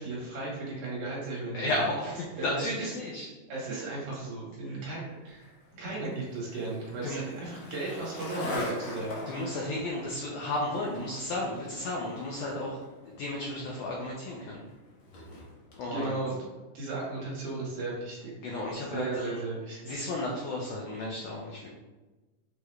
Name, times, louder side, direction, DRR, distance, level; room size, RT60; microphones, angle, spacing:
voice 1, 0.0-1.8 2.3-2.9 3.5-9.2 15.8-16.4 16.7-18.3 18.8-19.9, right 3 dB, 70° right, -5 dB, 2.5 m, -36 dB
voice 2, 1.5-3.3 7.0-7.2 9.3-12.8 13.2-14.6 15.8-16.1 18.4-19.3 19.9-21.7, left 1 dB, 85° left, -2 dB, 1.5 m, -33 dB
Skateboard, 5.3-15.8, left 1 dB, 65° left, 1.5 m, -42 dB
6.3 x 2.3 x 3.2 m, 1.2 s
omnidirectional pair, 3.8 m